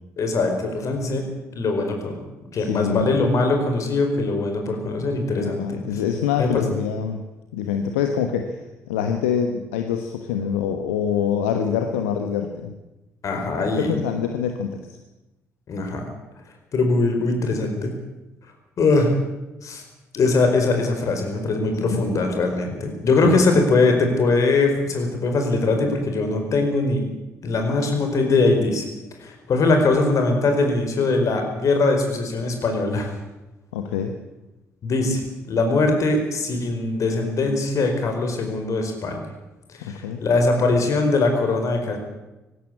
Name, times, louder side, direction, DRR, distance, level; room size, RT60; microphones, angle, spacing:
voice 1, 0.2-1.2 1.5-2.1 2.5-5.8 6.4-6.5 13.2-13.9 15.7-16.0 16.7-17.9 18.8-19.1 19.6-19.8 20.1-27.1 27.4-28.9 29.2-33.1 34.8-39.2 39.8-42.0, left 3 dB, 50° left, 4 dB, 4.8 m, -21 dB
voice 2, 2.6-3.1 5.4-7.2 7.5-8.6 8.9-12.7 13.6-14.8 21.8-22.0 23.2-23.4 33.7-34.1 39.8-40.2, left 8 dB, 75° left, 5 dB, 1.2 m, -25 dB
19.5 x 16.0 x 8.6 m, 1.0 s
figure-of-eight pair, 45°, 7 cm